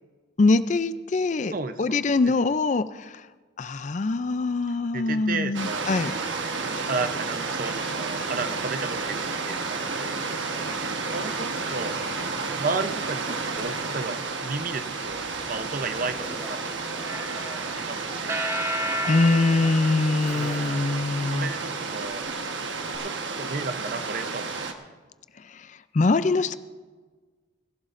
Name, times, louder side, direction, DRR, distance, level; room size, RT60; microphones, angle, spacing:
voice 1, 0.4-1.5 1.8-2.8 3.6-6.1 19.1-21.5 25.9-26.6, left 3 dB, 40° left, 13 dB, 0.4 m, -23 dB
voice 2, 1.5-2.0 4.9-5.9 6.6-10.2 11.0-12.0 12.6-16.8 17.8-18.5 20.3-21.0 21.3-22.3 23.0-24.5, right 4 dB, 45° right, 10 dB, 0.7 m, -33 dB
sound 1, 5.5-24.7, right 4 dB, 75° right, 1.2 m, -31 dB
Zipper (clothing), 13.5-13.7 14.2-17.2 18.1-21.1 22.1-22.3 22.9-23.0, left 1 dB, ahead, 3.4 m, -47 dB
sound 2, 17.1-21.3, right 1 dB, 15° right, 0.9 m, -33 dB
22.0 x 15.5 x 2.6 m, 1.4 s
head